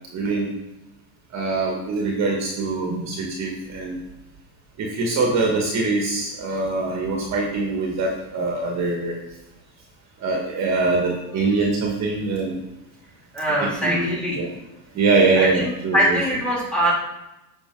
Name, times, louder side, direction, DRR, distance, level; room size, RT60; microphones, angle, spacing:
voice 1, 0.1-0.5 1.3-4.0 4.8-9.1 10.2-12.6 13.6-14.1 14.4-14.5 14.9-16.2, right 3 dB, 35° right, -1 dB, 1.9 m, -23 dB
voice 2, 13.3-14.4 15.4-16.9, equal, ahead, -4 dB, 3.1 m, -22 dB
9.1 x 6.2 x 3.9 m, 0.96 s
supercardioid pair, 125°, 47 cm